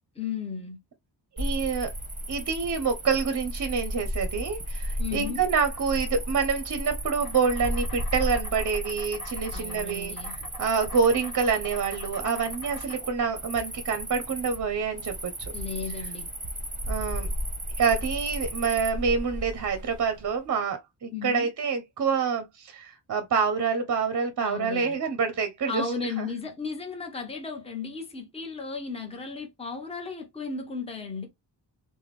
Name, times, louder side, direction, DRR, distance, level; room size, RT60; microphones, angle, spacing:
voice 1, 0.2-0.8 5.0-5.4 9.5-10.3 15.5-16.3 21.1-21.5 24.4-25.0 25.7-31.3, left 5 dB, 15° left, 0.8 m, -35 dB
Cricket, 1.4-20.3, equal, 20° right, 0.9 m, -34 dB
voice 2, 1.4-1.9 2.3-10.1 10.6-15.3 16.9-17.3 17.8-25.8 26.2-26.3, right 5 dB, 45° right, 0.6 m, -27 dB
Insect, 7.2-17.2, left 3 dB, 50° left, 0.9 m, -46 dB
3.3 x 2.2 x 3.0 m
wide cardioid pair, 145°, 42 cm